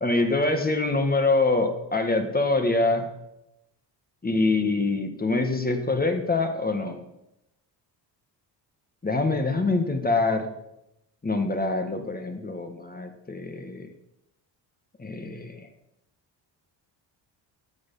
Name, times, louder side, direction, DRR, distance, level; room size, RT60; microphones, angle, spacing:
voice 1, 0.0-3.1 4.2-7.0 9.0-10.5 11.2-13.9 15.0-15.7, left 3 dB, 20° left, 5 dB, 1.5 m, -25 dB
13.5 x 8.0 x 5.4 m, 0.87 s
cardioid pair, 100°, 45 cm